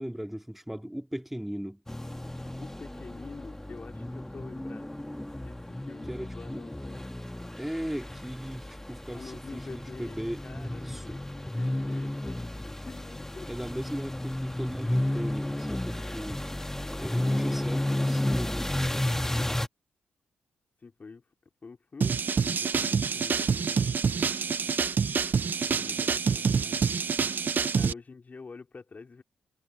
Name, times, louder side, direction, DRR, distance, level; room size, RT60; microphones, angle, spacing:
voice 1, 0.0-1.8 6.1-6.7 7.6-11.2 13.5-16.5 17.0-19.3, equal, 5° right, 2.9 m, -38 dB
sound 1, 1.9-19.7, left 1 dB, 10° left, 1.8 m, -33 dB
voice 2, 2.6-5.0 5.4-7.1 9.1-13.5 17.2-17.6 20.8-21.2 21.6-24.0 25.5-26.8 27.7-29.2, left 4 dB, 45° left, 3.5 m, -47 dB
sound 2, 22.0-27.9, right 6 dB, 55° right, 1.0 m, -27 dB
supercardioid pair, 45°, 4 cm